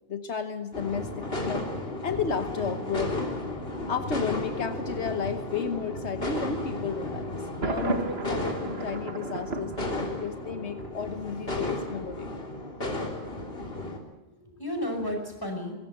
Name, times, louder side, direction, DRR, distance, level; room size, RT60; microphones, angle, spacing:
voice 1, 0.1-1.7 2.0-3.1 3.9-12.3 12.9-13.0, left 6 dB, 80° left, 8 dB, 1.5 m, -33 dB
sound 1, 0.7-14.0, left 2 dB, 60° left, 3.6 m, -34 dB
Thunder, 7.6-10.6, right 3 dB, 65° right, 2.0 m, -33 dB
voice 2, 13.7-15.7, left 1 dB, 20° left, 3 dB, 5.5 m, -34 dB
21.5 x 17.5 x 8.0 m, 1.0 s
omnidirectional pair, 1.1 m